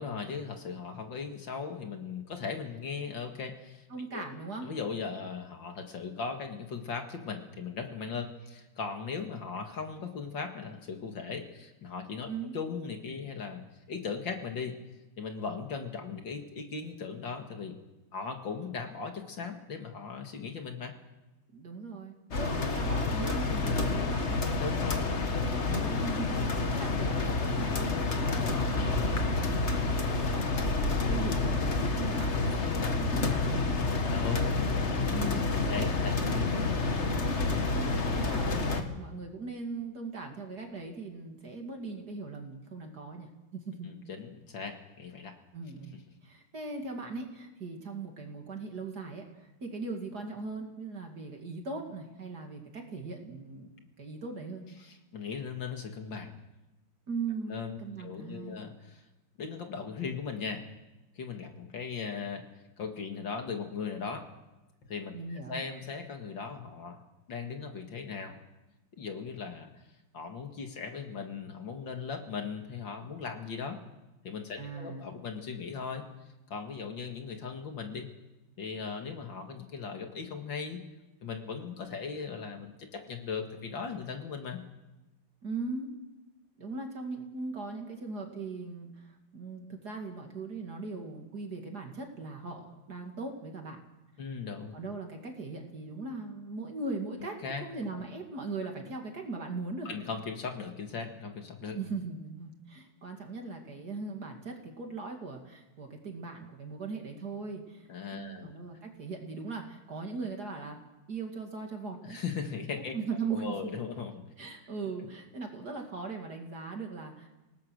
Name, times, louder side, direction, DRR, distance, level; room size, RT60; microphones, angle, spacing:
voice 1, 0.0-3.8 4.1-4.3 4.6-13.6 13.9-14.8 15.2-17.8 18.1-20.9 24.6-25.3 34.0-35.1 35.5-36.1 43.9-45.3 54.8-56.4 57.5-59.0 59.4-60.6 61.2-62.4 62.8-64.3 64.8-67.0 67.3-68.4 69.0-69.7 70.1-73.8 74.2-76.0 76.5-78.1 78.6-80.8 81.2-84.6 94.2-94.7 97.4-97.6 99.9-101.8 107.9-108.5 112.0-112.9 113.3-114.2, left 5 dB, 60° left, 4 dB, 2.5 m, -38 dB
voice 2, 3.9-4.7 12.3-12.5 21.5-24.5 25.6-33.7 35.1-35.7 36.2-36.5 36.9-43.9 45.5-45.9 46.2-54.7 57.1-58.6 65.1-65.6 74.6-75.0 85.4-85.9 86.6-93.8 94.7-99.9 101.7-110.8 111.1-112.2 112.9-113.7 114.4-117.3, right 4 dB, 45° right, 3 dB, 3.0 m, -39 dB
sound 1, 22.3-38.8, left 3 dB, 35° left, 1.7 m, -29 dB
27.5 x 18.5 x 6.4 m, 1.0 s
omnidirectional pair, 2.4 m